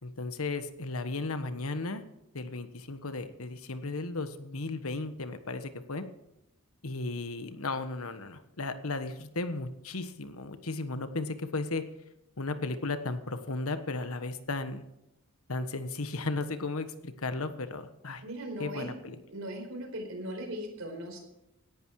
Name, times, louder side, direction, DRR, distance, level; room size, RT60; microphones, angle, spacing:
voice 1, 0.0-2.0 2.3-6.0 6.8-11.9 12.4-14.8 15.5-18.2 18.6-19.2, left 3 dB, 80° left, 10 dB, 1.4 m, -35 dB
voice 2, 18.2-19.0 19.3-21.2, right 1 dB, 70° right, 3 dB, 4.7 m, -38 dB
17.5 x 12.0 x 4.8 m, 0.86 s
head